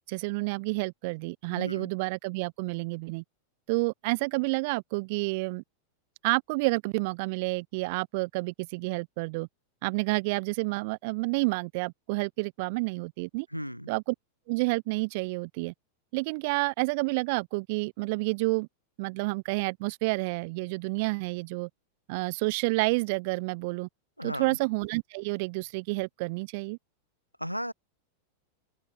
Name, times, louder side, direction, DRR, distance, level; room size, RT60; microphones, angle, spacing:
voice 1, 0.0-3.2 3.7-5.6 6.2-9.5 9.8-13.5 13.9-14.1 14.5-15.7 16.1-18.7 19.0-21.7 22.1-23.9 24.2-26.8, right 27 dB, 50° right, 1.7 m, -29 dB
voice 2, 1.5-1.9 13.5-13.9 24.2-24.6 27.4-27.7, equal, 90° right, 5.7 m, -35 dB
open air
figure-of-eight pair, 90°, 0 cm